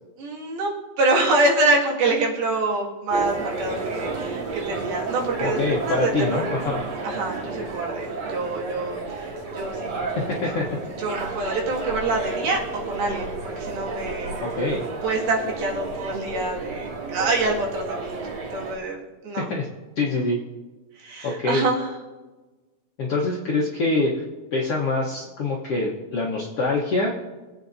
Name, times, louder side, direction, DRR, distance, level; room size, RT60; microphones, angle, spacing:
voice 1, 0.2-0.7 1.0-6.4 7.0-10.1 10.4-10.6 11.0-12.6 12.9-14.4 15.0-18.1 18.5-19.5 21.0-22.0, right 2 dB, 85° right, -3 dB, 4.0 m, -26 dB
sound 1, 3.1-18.8, right 3 dB, 55° right, 2.4 m, -31 dB
voice 2, 5.4-6.8 10.3-10.7 14.4-14.8 19.5-19.7 20.0-20.4 21.2-21.6 23.0-24.1 24.5-27.1, left 2 dB, 70° left, -2 dB, 1.4 m, -24 dB
25.0 x 8.5 x 2.7 m, 1.2 s
omnidirectional pair, 4.2 m